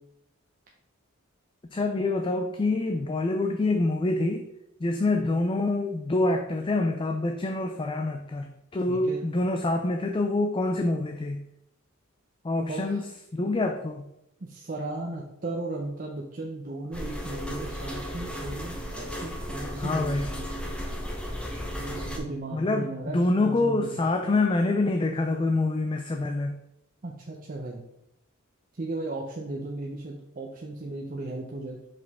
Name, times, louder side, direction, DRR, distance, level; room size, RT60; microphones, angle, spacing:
voice 1, 1.7-4.4 4.8-11.4 12.4-13.0 13.3-14.0 19.8-20.3 22.5-26.6, left 2 dB, 25° left, 5 dB, 0.4 m, -26 dB
voice 2, 8.9-9.2 12.7-13.1 14.4-20.5 21.8-24.0 27.0-27.8 28.7-31.8, right 2 dB, 40° right, -1 dB, 0.7 m, -36 dB
sound 1, 16.9-22.2, equal, 5° left, 0.8 m, -35 dB
6.0 x 4.9 x 3.6 m, 0.81 s
head